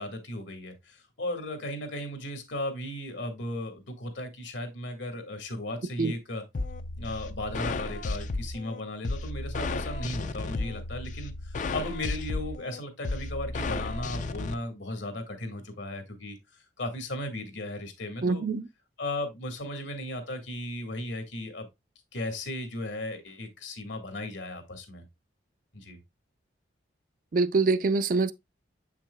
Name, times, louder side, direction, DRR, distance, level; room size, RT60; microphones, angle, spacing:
voice 1, 0.0-6.4 7.0-16.4 16.8-18.4 19.0-21.7 22.1-25.0 25.7-26.0, left 1 dB, 70° left, 1.7 m, -36 dB
sound 1, 6.5-14.5, left 3 dB, 40° left, 0.4 m, -33 dB
voice 2, 18.2-18.7 27.3-28.3, right 3 dB, 45° right, 0.3 m, -24 dB
7.4 x 5.9 x 2.2 m
head